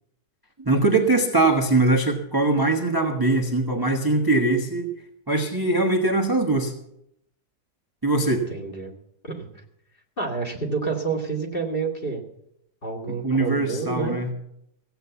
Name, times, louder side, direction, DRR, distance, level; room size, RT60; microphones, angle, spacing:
voice 1, 0.6-4.9 5.3-6.7 8.0-8.4 13.2-14.3, right 2 dB, 15° right, 2 dB, 0.8 m, -21 dB
voice 2, 8.5-8.9 9.2-9.6 10.2-12.2 12.8-14.2, right 4 dB, 30° left, 2 dB, 2.1 m, -28 dB
16.0 x 8.0 x 6.9 m, 0.78 s
omnidirectional pair, 1.9 m